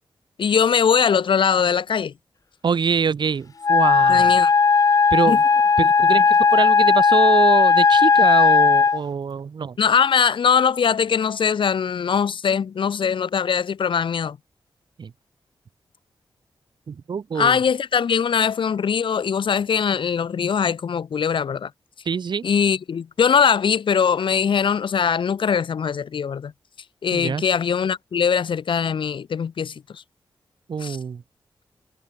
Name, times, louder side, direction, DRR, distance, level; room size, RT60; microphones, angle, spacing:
voice 1, 0.4-2.1 4.1-4.5 5.3-5.4 9.8-14.4 17.4-21.7 22.4-26.5 27.0-30.0 30.8-31.0, left 7 dB, 75° left, 6.2 m, -21 dB
voice 2, 2.6-4.4 5.1-5.4 5.8-9.8 15.0-15.1 16.9-17.6 22.0-22.4 27.1-27.4 30.7-31.2, right 6 dB, 60° right, 6.1 m, -24 dB
Wind instrument woodwind instrument, 3.6-9.0, left 5 dB, 40° left, 0.9 m, -16 dB
wide cardioid pair, 135°, 9 cm